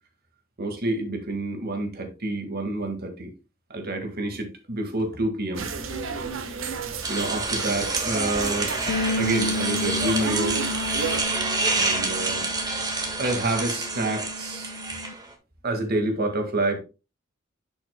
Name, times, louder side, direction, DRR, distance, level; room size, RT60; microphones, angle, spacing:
voice 1, 0.6-3.3 3.7-5.7 7.1-8.7 9.2-10.6 11.8-12.5 13.2-14.7 15.6-16.8, right 2 dB, 50° right, 1.9 m, -28 dB
sound 1, 5.6-11.2, right 4 dB, 75° right, 1.3 m, -32 dB
sound 2, 7.0-15.3, right 3 dB, 20° right, 1.7 m, -28 dB
sound 3, 8.9-15.1, left 3 dB, 75° left, 0.6 m, -32 dB
11.0 x 5.9 x 2.2 m
head